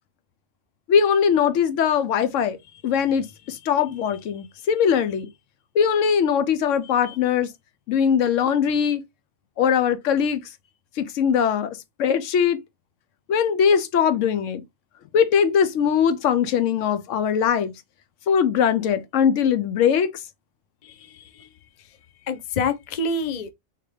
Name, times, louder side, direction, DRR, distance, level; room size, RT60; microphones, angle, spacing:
voice 1, 0.9-2.6 2.8-5.3 5.7-7.5 7.9-9.0 9.6-10.4 11.0-12.6 13.3-14.6 15.1-17.7 18.3-20.1, left 7 dB, 85° left, 1.0 m, -21 dB
voice 2, 20.8-21.5 21.8-22.0 22.2-23.5, left 3 dB, 50° left, 0.5 m, -28 dB
3.7 x 2.8 x 3.1 m
omnidirectional pair, 1.3 m